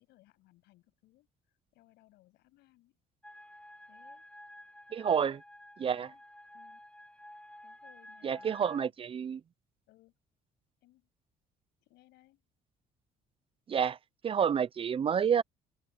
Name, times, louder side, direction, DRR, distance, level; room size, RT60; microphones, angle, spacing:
voice 1, 0.0-3.0 3.9-4.3 4.9-5.4 5.9-6.2 6.5-6.8 7.6-8.9 9.9-10.2 10.8-11.1 11.8-12.4, left 18 dB, 85° left, 7.3 m, -64 dB
sound 1, 3.2-8.9, left 1 dB, 5° left, 1.3 m, -52 dB
voice 2, 4.9-5.4 5.8-6.1 8.2-9.4 13.7-14.0 14.2-15.4, right 7 dB, 35° right, 0.4 m, -29 dB
open air
cardioid pair, 110°, 17 cm